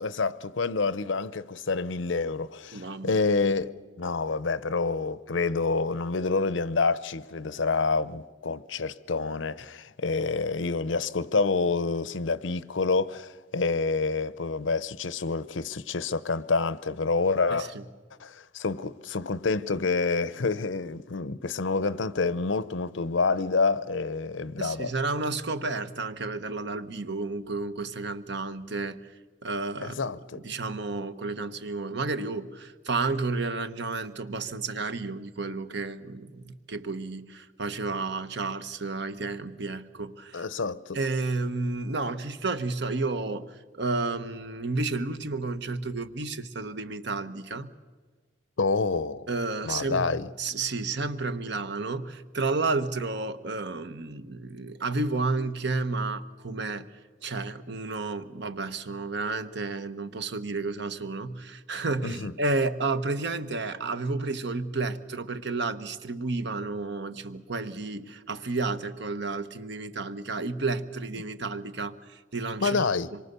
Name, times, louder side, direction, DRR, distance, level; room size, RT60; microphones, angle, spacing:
voice 1, 0.0-17.7 18.2-24.9 29.8-30.4 40.3-41.0 48.6-49.3 49.6-50.3 62.0-62.3 72.6-73.1, left 4 dB, 80° left, 0.7 m, -28 dB
voice 2, 2.7-3.2 17.5-17.8 24.6-29.1 29.4-40.4 40.9-47.7 49.3-50.1 50.4-56.9 57.2-72.8 73.1-73.2, right 3 dB, 65° right, 1.1 m, -31 dB
26.0 x 23.0 x 6.8 m
head